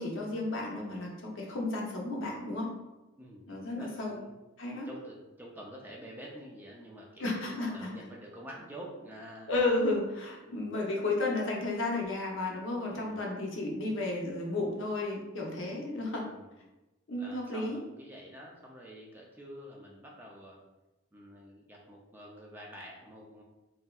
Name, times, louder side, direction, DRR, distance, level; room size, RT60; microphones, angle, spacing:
voice 1, 0.0-2.7 3.5-4.2 4.6-4.9 7.2-7.9 9.5-16.2 17.1-17.8, left 2 dB, 60° left, -1 dB, 0.6 m, -33 dB
voice 2, 3.8-4.3 4.8-9.5 10.5-10.7 12.9-13.3 16.2-16.5 17.2-20.6 21.1-23.4, equal, 10° right, -2 dB, 0.3 m, -48 dB
3.1 x 2.7 x 2.2 m, 1.0 s
head